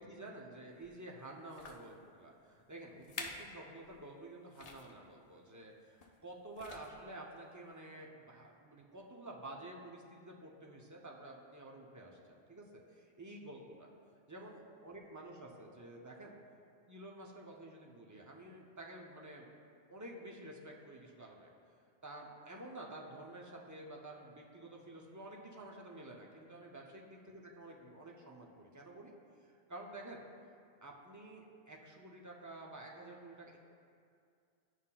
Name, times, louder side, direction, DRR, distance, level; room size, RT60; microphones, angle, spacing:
voice 1, 0.0-13.9 14.3-16.3 16.9-19.5 19.9-21.5 22.0-29.1 29.4-30.2 30.8-33.6, right 1 dB, 30° right, -2 dB, 0.3 m, -50 dB
sound 1, 0.8-0.9 1.5-1.9 2.6-2.7 3.0-3.5 3.8-4.0 4.5-4.9 6.0-6.2 6.5-7.1 7.8-7.9, left 4 dB, 55° left, 0.4 m, -48 dB
9.7 x 5.6 x 2.2 m, 2.3 s
omnidirectional pair, 1.1 m